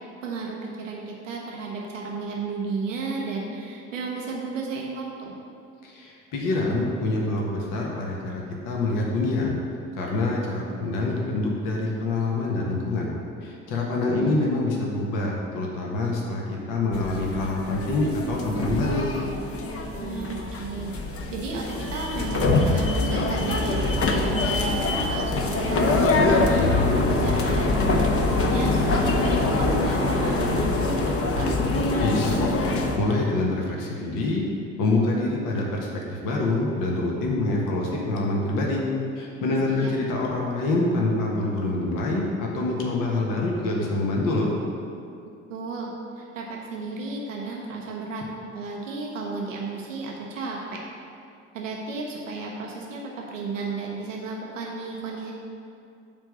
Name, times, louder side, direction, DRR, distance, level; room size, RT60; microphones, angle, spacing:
voice 1, 0.0-5.3 14.1-14.5 20.0-20.9 21.3-23.9 24.3-31.5 39.6-39.9 45.5-45.9 46.2-48.2 48.5-50.6 51.5-55.3, right 3 dB, 90° right, -2 dB, 1.0 m, -33 dB
voice 2, 5.8-9.5 10.0-13.1 13.4-16.4 16.7-19.1 32.0-32.5 33.0-34.5 34.8-38.8 39.2-44.5, left 2 dB, 60° left, -2 dB, 1.4 m, -26 dB
sound 1, 16.9-33.0, left 2 dB, 35° left, 1.0 m, -24 dB
8.9 x 3.5 x 6.7 m, 2.5 s
hypercardioid pair, 60°, 37 cm